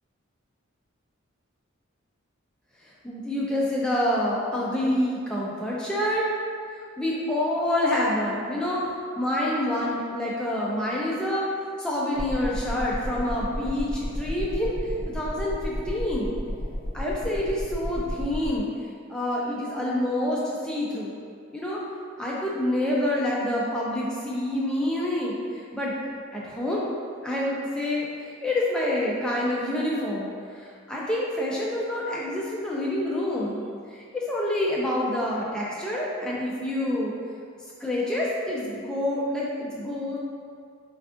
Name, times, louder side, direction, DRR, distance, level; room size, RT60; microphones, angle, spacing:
voice 1, 3.0-6.3 7.0-8.9 9.2-11.5 11.8-14.7 15.1-16.3 16.9-18.7 19.1-21.1 21.5-21.8 22.2-25.9 26.3-26.8 27.2-37.1 37.8-40.2, left 1 dB, 5° left, -6 dB, 0.3 m, -27 dB
sound 1, 12.1-18.6, equal, 75° left, 0.6 m, -32 dB
3.4 x 2.4 x 2.4 m, 2.2 s
head